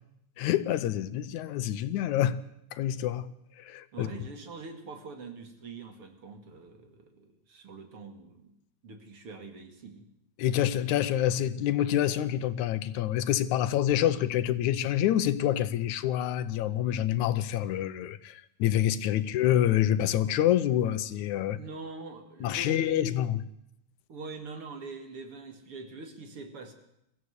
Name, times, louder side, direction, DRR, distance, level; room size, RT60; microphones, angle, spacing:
voice 1, 0.4-2.4 2.7-3.3 3.6-4.2 10.4-21.6 22.4-23.4, left 11 dB, 85° left, 2.3 m, -27 dB
voice 2, 3.9-8.5 8.8-10.1 19.2-19.3 21.5-23.1 24.1-26.7, right 3 dB, 50° right, 3.0 m, -44 dB
23.0 x 15.5 x 8.1 m
omnidirectional pair, 3.3 m